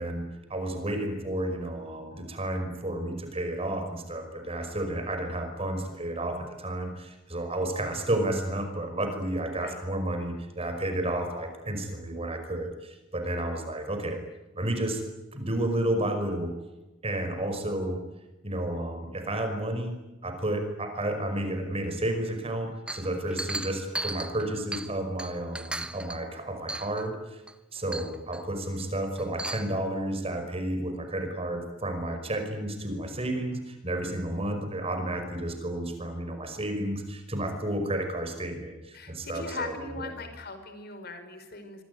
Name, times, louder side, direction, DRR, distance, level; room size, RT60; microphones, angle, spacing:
voice 1, 0.0-14.2 14.6-15.0 15.3-16.5 17.0-18.0 18.4-19.9 20.2-27.4 27.7-40.1, right 1 dB, 30° right, 6 dB, 5.5 m, -31 dB
voice 2, 9.5-9.9 38.9-41.8, left 3 dB, 55° left, 8 dB, 4.9 m, -40 dB
Chink clink, 22.9-24.9 25.2-26.2 26.7-27.1 27.5-27.6 27.9-28.4 29.2-29.7, right 1 dB, 5° right, 1.2 m, -36 dB
26.0 x 24.0 x 9.6 m, 1.1 s
head